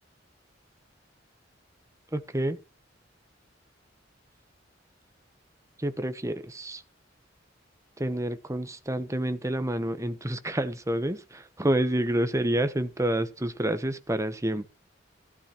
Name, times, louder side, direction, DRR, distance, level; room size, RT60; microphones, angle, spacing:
voice 1, 2.1-2.6 5.8-6.8 8.0-14.7, right 1 dB, 15° right, 0.9 m, -28 dB
14.5 x 12.0 x 3.0 m
head